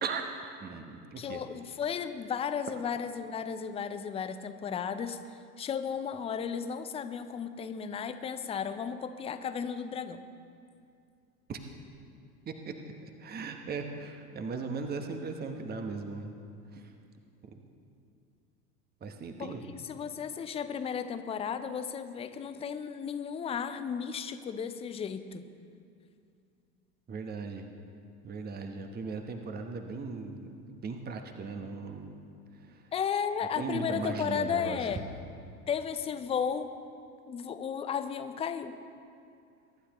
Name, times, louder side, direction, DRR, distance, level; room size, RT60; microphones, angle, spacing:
voice 1, 0.6-1.4 11.5-11.6 12.5-12.7 13.2-16.4 16.7-16.9 17.4-17.6 19.0-19.8 27.1-27.7 28.2-32.2 32.5-32.9 33.6-35.0, right 4 dB, 20° right, 5 dB, 1.1 m, -38 dB
voice 2, 1.2-10.2 19.4-25.4 32.9-35.0 35.7-36.7 37.3-38.8, left 7 dB, 15° left, 10 dB, 0.5 m, -34 dB
23.0 x 11.5 x 3.1 m, 2.5 s
figure-of-eight pair, 85°, 48 cm